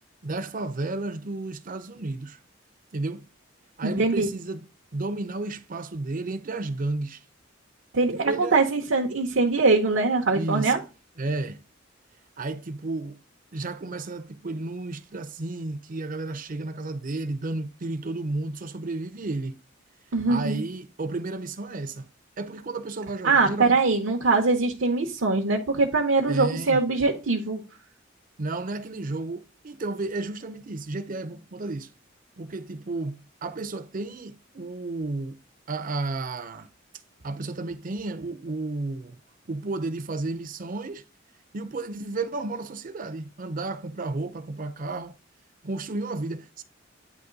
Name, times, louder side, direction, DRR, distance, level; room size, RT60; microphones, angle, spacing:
voice 1, 0.2-2.4 2.9-3.2 3.8-4.6 4.9-7.2 8.2-8.6 10.3-10.8 11.2-11.6 12.4-13.2 13.5-19.6 20.3-22.1 22.4-23.8 26.3-26.8 28.4-31.9 32.4-35.4 35.7-36.7 37.2-39.2 39.5-41.0 41.5-45.2 45.6-46.6, right 2 dB, 45° right, 0.6 m, -32 dB
voice 2, 3.8-4.3 7.9-10.8 20.1-20.6 23.2-27.6, right 3 dB, 75° right, 0.9 m, -22 dB
9.3 x 3.1 x 3.8 m
head